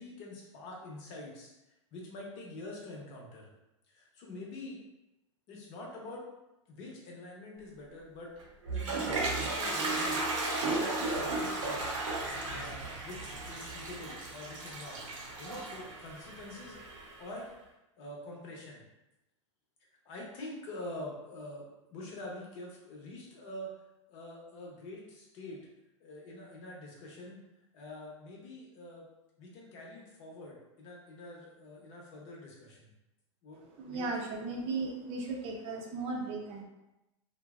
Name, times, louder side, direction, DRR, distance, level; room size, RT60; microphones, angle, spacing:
voice 1, 0.0-1.5 1.9-3.5 3.9-4.8 5.5-6.3 6.7-8.3 8.7-10.2 10.6-12.0 12.4-15.0 15.4-16.8 17.2-17.5 18.0-18.8 20.0-23.7 24.1-25.6 26.0-27.4 27.7-29.1 29.4-32.9 33.4-34.3, left 1 dB, 50° left, -2 dB, 0.9 m, -45 dB
Toilet flush, 8.4-17.3, right 2 dB, 85° right, 0.7 m, -35 dB
voice 2, 33.8-36.6, right 3 dB, 35° right, 0 dB, 0.5 m, -36 dB
2.6 x 2.1 x 2.3 m, 0.94 s
hypercardioid pair, 115°, 16 cm